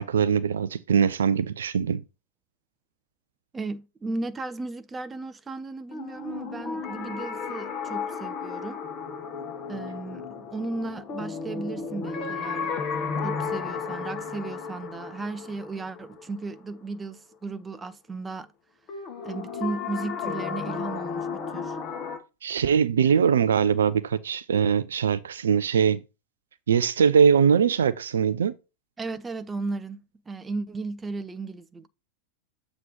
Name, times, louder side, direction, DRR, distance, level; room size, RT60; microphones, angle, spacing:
voice 1, 0.0-2.0 22.4-26.0 26.7-28.5, right 7 dB, 65° right, 0.4 m, -22 dB
voice 2, 3.5-8.8 9.7-12.7 13.2-18.5 19.2-21.8 29.0-30.0 30.3-31.9, right 3 dB, 15° right, 0.5 m, -35 dB
sound 1, 5.9-16.8 18.9-22.2, left 5 dB, 30° left, 1.4 m, -33 dB
7.5 x 3.0 x 5.4 m
figure-of-eight pair, 90°, 0 cm